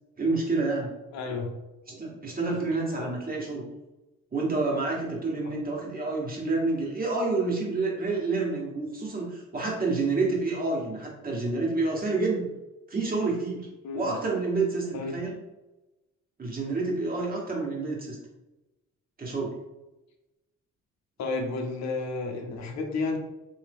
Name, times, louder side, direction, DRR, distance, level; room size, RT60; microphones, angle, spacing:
voice 1, 0.2-0.9 1.9-3.6 4.3-12.5 12.9-13.7 13.9-15.4 16.4-18.2 19.2-19.6, right 3 dB, 30° right, -2 dB, 1.3 m, -28 dB
voice 2, 1.1-1.5 2.5-2.6 3.0-3.1 5.4-5.5 13.8-14.2 14.9-15.1 21.2-23.2, left 3 dB, 65° left, 3 dB, 0.8 m, -32 dB
3.4 x 2.7 x 3.5 m, 1.0 s
cardioid pair, 90°, 30 cm